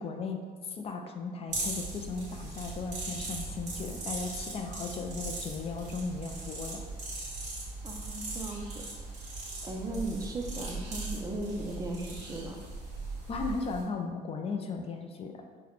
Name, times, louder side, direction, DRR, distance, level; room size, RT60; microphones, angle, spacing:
voice 1, 0.0-6.8 13.3-15.4, left 4 dB, 35° left, 3 dB, 0.4 m, -36 dB
sound 1, 1.5-13.8, right 2 dB, 45° right, 1.4 m, -39 dB
voice 2, 7.8-8.6 9.6-12.6, right 1 dB, 20° right, 1 dB, 0.5 m, -37 dB
3.9 x 2.1 x 3.0 m, 1.5 s
cardioid pair, 110°, 17 cm